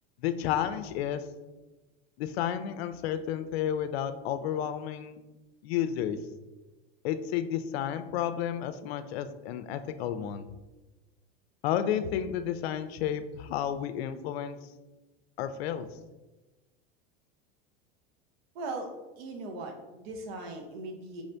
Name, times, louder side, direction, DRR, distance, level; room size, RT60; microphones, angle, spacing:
voice 1, 0.2-1.2 2.2-5.2 5.6-6.2 7.0-10.5 11.6-14.6 15.4-15.9, left 10 dB, 85° left, 11 dB, 0.5 m, -31 dB
voice 2, 18.5-18.9 19.2-21.2, right 2 dB, 80° right, 3 dB, 0.8 m, -39 dB
4.9 x 2.6 x 3.3 m, 1.1 s
supercardioid pair, 130°, 31 cm